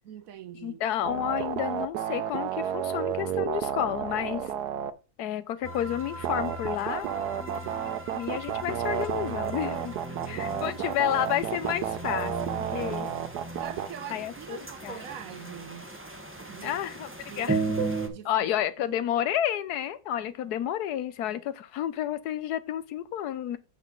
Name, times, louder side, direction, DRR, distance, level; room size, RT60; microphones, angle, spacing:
voice 1, 0.0-0.8 10.1-10.8 12.7-12.9 13.6-15.9 16.5-16.8 17.3-17.7 18.1-18.5 18.8-19.0, right 10 dB, 65° right, 1.0 m, -43 dB
voice 2, 0.6-4.5 5.2-7.1 8.1-10.0 10.3-12.3 12.7-13.1 14.1-15.0 16.6-17.1 17.4-17.6 18.2-23.6, left 11 dB, 80° left, 1.2 m, -30 dB
sound 1, 1.0-4.9 6.2-13.9, right 10 dB, 85° right, 1.3 m, -31 dB
sound 2, 5.6-18.1, right 3 dB, 10° right, 0.8 m, -36 dB
7.4 x 6.9 x 3.8 m
omnidirectional pair, 1.7 m